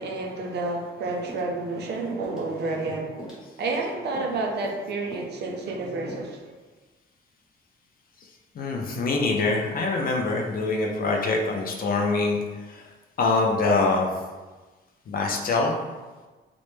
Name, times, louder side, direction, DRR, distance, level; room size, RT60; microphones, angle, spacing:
voice 1, 0.0-3.2 3.6-6.5, right 3 dB, 60° right, 1 dB, 0.5 m, -30 dB
sound 1, 1.3-1.9 2.2-2.5 2.7-2.9 3.2-3.8 4.1-4.4 4.6-4.8 5.1-5.3 5.6-5.8 6.1-6.2, right 1 dB, 5° right, 0.9 m, -41 dB
voice 2, 8.5-12.4 12.7-12.8 13.2-14.1 15.1-15.7, left 3 dB, 45° left, 1 dB, 0.4 m, -24 dB
2.1 x 2.0 x 3.0 m, 1.3 s
cardioid pair, 90°, 20 cm